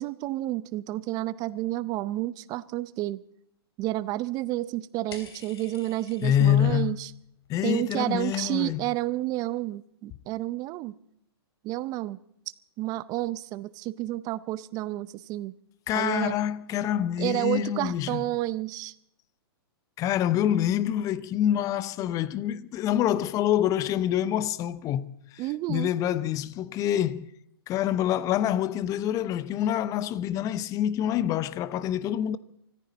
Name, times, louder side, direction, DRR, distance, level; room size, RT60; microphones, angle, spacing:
voice 1, 0.0-3.2 3.8-7.1 7.6-10.9 11.6-12.2 12.8-15.5 15.9-16.4 17.2-18.9 25.4-25.9, right 16 dB, 30° right, 0.6 m, -30 dB
sound 1, 5.1-6.7 7.0-7.5 7.8-8.9, left 5 dB, 80° left, 3.7 m, -48 dB
voice 2, 6.2-6.9 7.5-8.9 15.9-18.2 20.0-25.4 25.7-27.3 27.7-32.4, left 11 dB, 25° left, 0.7 m, -26 dB
24.5 x 14.5 x 4.1 m
hypercardioid pair, 135°, 13 cm